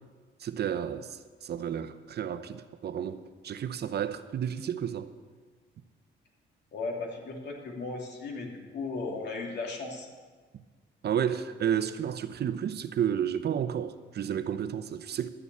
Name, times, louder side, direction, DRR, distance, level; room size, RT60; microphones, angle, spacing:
voice 1, 0.4-5.1 11.0-15.3, right 9 dB, 55° right, 0.7 m, -31 dB
voice 2, 6.7-10.1, left 3 dB, 60° left, 2.9 m, -36 dB
12.0 x 6.9 x 8.4 m
cardioid pair, 90°, 20 cm